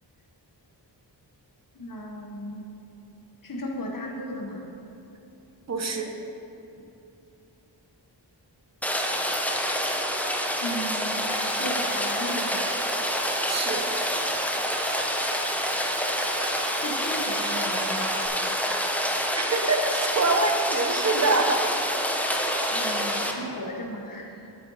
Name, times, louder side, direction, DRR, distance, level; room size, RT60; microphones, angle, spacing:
voice 1, 1.7-2.7 3.4-4.7 10.6-12.6 16.7-18.2 22.7-24.6, equal, 45° left, 1 dB, 1.1 m, -35 dB
voice 2, 5.7-6.1 13.5-13.9 19.4-21.6, right 3 dB, 35° right, 4 dB, 0.8 m, -25 dB
Rain, 8.8-23.3, equal, 5° left, 0.6 m, -27 dB
Stream, 11.2-18.3, right 7 dB, 90° right, 0.6 m, -42 dB
7.9 x 7.5 x 4.0 m, 2.8 s
wide cardioid pair, 110°, 44 cm